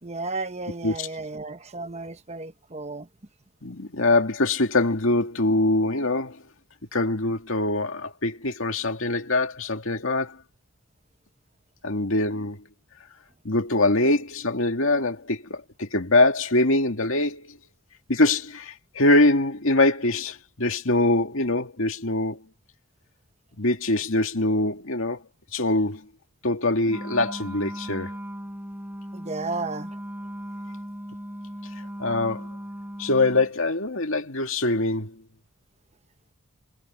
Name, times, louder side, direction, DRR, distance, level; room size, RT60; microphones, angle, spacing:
voice 1, 0.0-3.1 29.1-30.0, right 3 dB, 30° right, 1.0 m, -33 dB
voice 2, 3.6-6.4 6.9-10.4 11.8-12.6 13.4-17.6 18.1-22.4 23.6-25.2 25.5-26.0 26.4-28.2 32.0-32.5 33.0-35.2, left 2 dB, 70° left, 2.3 m, -23 dB
Wind instrument woodwind instrument, 26.9-33.5, equal, 10° right, 5.4 m, -37 dB
head